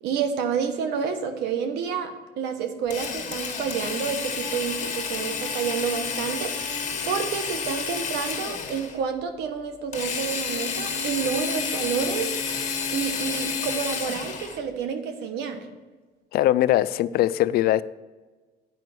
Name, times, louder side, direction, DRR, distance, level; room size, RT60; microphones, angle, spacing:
voice 1, 0.0-12.3 12.9-15.6, right 7 dB, 85° right, 7 dB, 1.2 m, -29 dB
Drill, 2.9-9.0 9.9-14.6, left 5 dB, 45° left, 1.5 m, -30 dB
voice 2, 16.3-17.8, left 14 dB, 65° left, 16 dB, 0.4 m, -21 dB
9.1 x 5.3 x 6.1 m, 1.3 s
cardioid pair, 110°, 17 cm